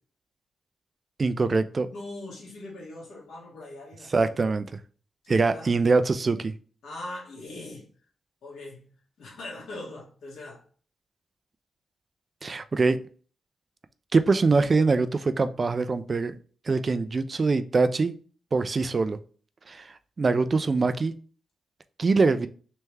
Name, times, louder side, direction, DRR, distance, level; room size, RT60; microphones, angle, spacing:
voice 1, 1.2-1.9 4.1-4.7 5.3-6.5 12.4-13.0 14.1-16.4 16.7-18.1 18.5-19.2 19.7-19.8 20.2-21.1 22.0-22.5, right 4 dB, 45° right, 0.4 m, -23 dB
voice 2, 1.9-4.5 5.2-5.7 6.8-7.9 8.4-8.9 9.2-10.6, left 2 dB, 85° left, 1.5 m, -41 dB
3.4 x 3.1 x 3.3 m
cardioid pair, 60°, 0 cm